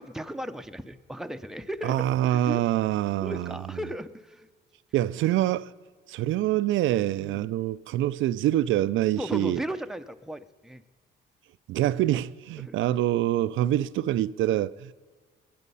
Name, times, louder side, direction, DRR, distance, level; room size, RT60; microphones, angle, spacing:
voice 1, 0.0-2.6 3.2-4.5 7.2-7.5 9.2-10.8 12.6-12.7, right 1 dB, ahead, 0.7 m, -36 dB
voice 2, 1.8-3.6 4.9-5.7 6.1-9.6 11.7-14.9, right 13 dB, 80° right, 0.4 m, -25 dB
20.0 x 10.5 x 5.5 m
cardioid pair, 90°, 20 cm